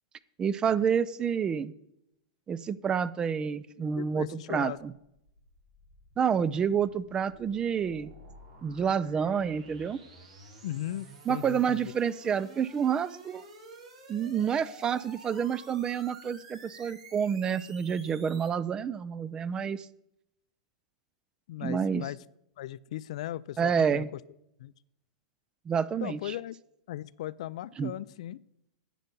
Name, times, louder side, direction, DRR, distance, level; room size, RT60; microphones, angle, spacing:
voice 1, 0.4-1.7 2.5-4.9 6.2-8.1 8.6-10.0 11.3-13.4 14.1-19.9 21.6-22.0 23.6-24.1 25.7-26.3 27.8-27.9, right 7 dB, 20° right, 18 dB, 0.5 m, -29 dB
voice 2, 4.0-4.8 10.6-11.9 21.5-22.2 22.6-24.2 24.6-24.7 26.0-26.6 26.9-28.4, left 13 dB, 65° left, 18 dB, 0.4 m, -37 dB
sound 1, 5.1-18.5, right 3 dB, 85° right, 5.1 m, -51 dB
10.0 x 9.1 x 5.3 m, 0.79 s
hypercardioid pair, 120°, 4 cm